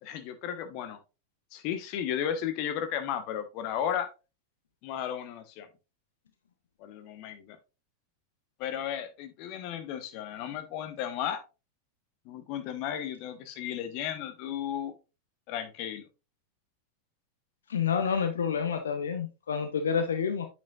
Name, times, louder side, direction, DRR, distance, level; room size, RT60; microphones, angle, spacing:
voice 1, 0.0-1.0 1.5-4.1 4.8-5.7 6.8-7.6 8.6-11.4 12.2-14.9 15.5-16.0, left 9 dB, 45° left, 9 dB, 1.2 m, -34 dB
voice 2, 17.7-20.5, left 6 dB, 65° left, 7 dB, 0.9 m, -28 dB
8.6 x 6.4 x 2.5 m, 0.29 s
figure-of-eight pair, 90°, 0 cm